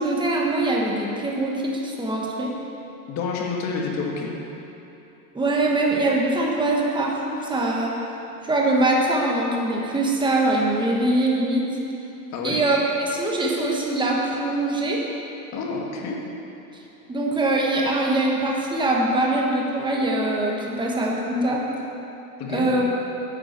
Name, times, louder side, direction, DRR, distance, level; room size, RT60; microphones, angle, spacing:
voice 1, 0.0-2.5 5.3-7.9 8.4-11.7 12.4-15.0 17.1-21.6 22.5-22.8, right 2 dB, 10° right, -2 dB, 1.3 m, -23 dB
voice 2, 3.1-4.3 12.3-12.6 15.5-16.2 22.4-22.7, left 4 dB, 35° left, -1 dB, 1.7 m, -28 dB
9.7 x 6.0 x 8.1 m, 3.0 s
supercardioid pair, 140°, 46 cm